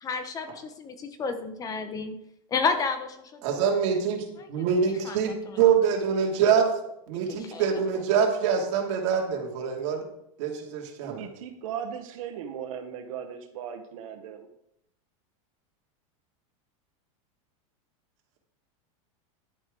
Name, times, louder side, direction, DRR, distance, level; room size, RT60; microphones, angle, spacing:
voice 1, 0.0-2.2 2.5-3.4 4.4-4.6 5.0-5.2 5.5-5.6 7.4-7.7, left 5 dB, 20° left, 9 dB, 0.7 m, -31 dB
voice 2, 3.4-10.0 10.4-11.3, right 7 dB, 55° right, 1 dB, 2.6 m, -25 dB
voice 3, 11.0-14.5, right 8 dB, 70° right, 6 dB, 1.2 m, -37 dB
11.0 x 9.2 x 3.8 m, 0.78 s
supercardioid pair, 155°, 18 cm